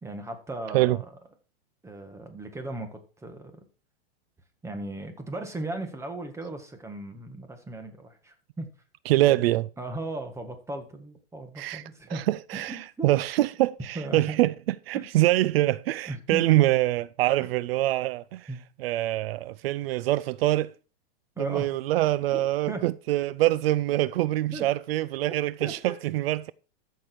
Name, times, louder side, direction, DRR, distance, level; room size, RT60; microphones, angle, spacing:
voice 1, 0.0-1.1 1.8-3.6 4.6-8.7 9.3-9.4 9.8-12.2 12.5-13.1 14.0-14.4 14.9-15.1 16.1-16.5 17.4-17.5 18.5-18.6 21.4-21.7 22.3-22.8 24.5-24.7 25.3-25.9, right 2 dB, 10° right, 1.8 m, -37 dB
voice 2, 9.1-9.7 11.6-11.8 12.1-14.5 14.9-18.5 18.8-20.7 21.4-26.5, right 16 dB, 70° right, 0.5 m, -24 dB
13.5 x 6.8 x 4.6 m
supercardioid pair, 140°, 31 cm